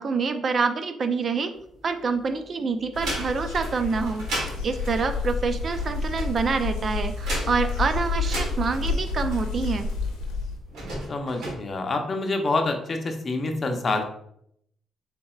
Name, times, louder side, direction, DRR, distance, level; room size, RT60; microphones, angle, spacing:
voice 1, 0.0-1.5 1.8-9.9, right 4 dB, 50° right, 9 dB, 0.4 m, -27 dB
sound 1, 1.5-2.4 2.8-9.9 10.6-11.5, right 1 dB, 75° right, 1.3 m, -35 dB
sound 2, 2.9-10.6, left 3 dB, 85° left, 0.8 m, -29 dB
voice 2, 11.1-14.0, left 2 dB, 45° left, 4 dB, 0.7 m, -27 dB
4.0 x 3.3 x 2.4 m, 0.71 s
supercardioid pair, 60°, 0 cm